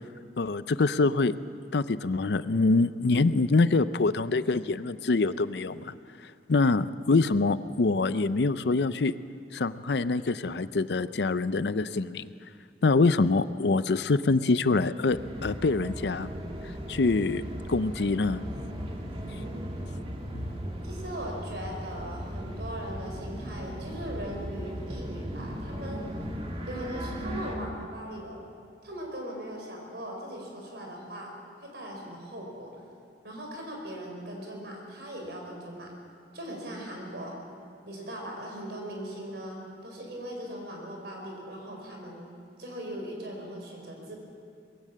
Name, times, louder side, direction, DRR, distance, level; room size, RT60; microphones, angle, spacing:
voice 1, 0.4-1.4 1.7-5.9 6.5-9.1 9.5-12.3 12.8-16.3 16.9-17.4 17.7-18.4 20.3-20.5, left 3 dB, 70° left, 14 dB, 0.5 m, -25 dB
sound 1, 15.1-27.6, equal, 35° right, 1.9 m, -37 dB
voice 2, 20.8-26.0 26.7-28.4 28.8-31.3 31.6-32.8 33.2-35.9 36.3-37.3 37.9-42.3 42.6-44.2, equal, 65° right, 1 dB, 5.0 m, -39 dB
21.0 x 16.5 x 7.6 m, 2.3 s
head